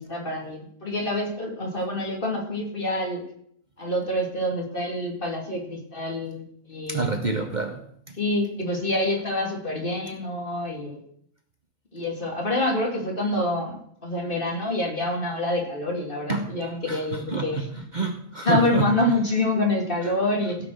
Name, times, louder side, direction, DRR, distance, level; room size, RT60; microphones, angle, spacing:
voice 1, 0.0-3.2 3.8-6.4 6.7-7.2 8.2-11.0 11.9-17.6 18.4-20.6, left 1 dB, 45° left, 1 dB, 2.7 m, -27 dB
voice 2, 6.9-7.8 16.3-16.5 16.9-18.9 20.0-20.1, right 4 dB, 40° right, 6 dB, 0.9 m, -28 dB
16.0 x 6.0 x 6.3 m, 0.67 s
omnidirectional pair, 1.3 m